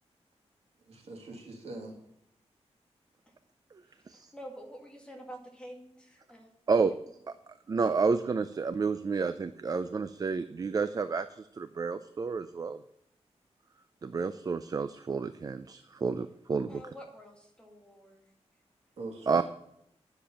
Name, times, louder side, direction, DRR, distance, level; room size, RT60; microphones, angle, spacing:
voice 1, 0.9-2.0 19.0-19.4, right 2 dB, 70° right, 1 dB, 2.6 m, -42 dB
voice 2, 3.8-6.5 16.7-18.3, equal, 10° left, 0 dB, 2.2 m, -48 dB
voice 3, 7.7-12.8 14.0-16.8 19.3-19.4, right 4 dB, 35° right, 11 dB, 0.4 m, -30 dB
10.0 x 6.8 x 7.1 m, 0.78 s
wide cardioid pair, 155°, 11 cm